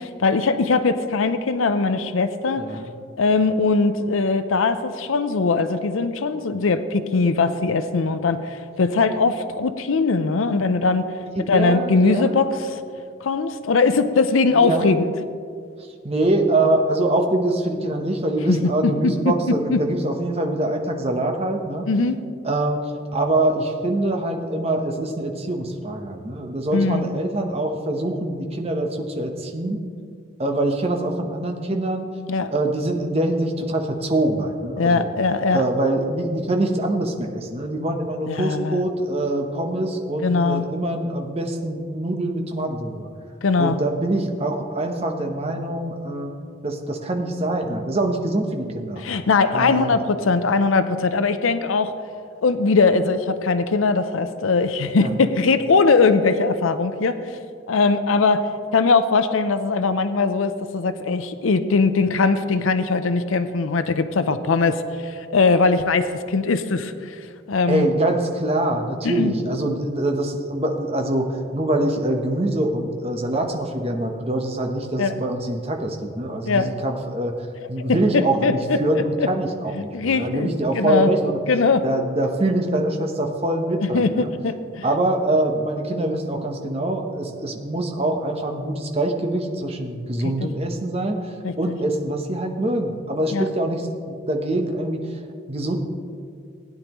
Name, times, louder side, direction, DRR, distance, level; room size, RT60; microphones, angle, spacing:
voice 1, 0.0-2.6 3.2-11.1 11.5-12.8 13.2-15.1 18.5-18.7 19.0-19.3 19.7-19.8 21.9-22.2 26.7-27.1 32.3-32.5 34.8-35.7 38.3-38.8 40.2-40.7 43.4-43.8 49.0-51.9 52.4-57.2 57.7-58.4 58.7-67.2 67.5-67.9 69.0-69.3 75.0-75.2 76.5-76.8 77.8-78.0 78.4-78.8 79.2-79.3 79.8-81.1 81.5-81.9 83.8-84.9 90.2-90.5 91.4-91.7 93.3-93.5, left 4 dB, 85° left, 11 dB, 0.6 m, -20 dB
voice 2, 2.6-2.9 11.4-12.5 14.5-15.0 16.0-21.9 22.4-29.8 30.4-32.1 32.5-35.1 35.5-43.1 43.6-46.4 46.6-49.0 49.5-50.0 55.0-55.1 67.7-71.3 71.5-77.3 77.7-81.4 81.8-84.3 84.8-95.1 95.5-95.8, right 1 dB, 30° right, 3 dB, 0.9 m, -24 dB
16.0 x 9.7 x 3.0 m, 2.2 s
head